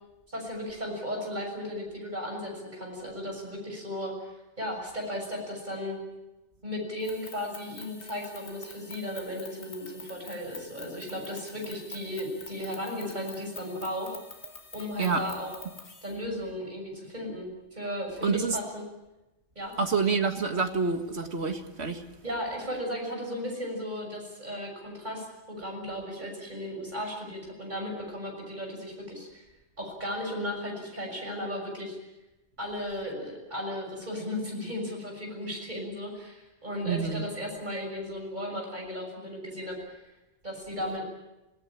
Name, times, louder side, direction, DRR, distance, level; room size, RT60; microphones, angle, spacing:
voice 1, 0.3-6.0 6.6-14.2 14.7-15.5 16.0-18.8 19.6-19.7 22.2-29.4 29.8-32.0 32.6-40.0 40.4-41.0, left 1 dB, 40° right, 1 dB, 7.0 m, -35 dB
sound 1, 7.0-16.2, left 3 dB, 70° left, 2.3 m, -46 dB
voice 2, 18.2-18.6 19.8-22.0 36.8-37.2, right 5 dB, 70° right, 6 dB, 2.1 m, -27 dB
26.0 x 17.5 x 8.9 m, 1.0 s
omnidirectional pair, 1.2 m